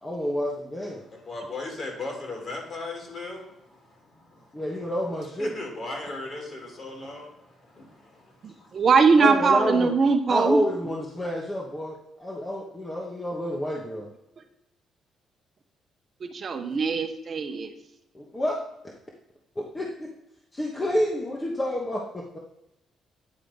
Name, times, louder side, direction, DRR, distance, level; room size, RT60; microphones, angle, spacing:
voice 1, 0.0-1.0 4.5-5.5 9.2-9.9 10.3-14.1 18.1-18.5 19.6-20.1 20.5-22.4, equal, 20° left, -1 dB, 1.2 m, -29 dB
voice 2, 1.1-4.8 5.4-8.8, left 2 dB, 45° left, 1 dB, 2.8 m, -38 dB
voice 3, 8.4-10.6 16.2-17.7, right 5 dB, 45° right, 7 dB, 0.8 m, -21 dB
9.6 x 3.8 x 5.2 m, 0.89 s
cardioid pair, 90°, 0 cm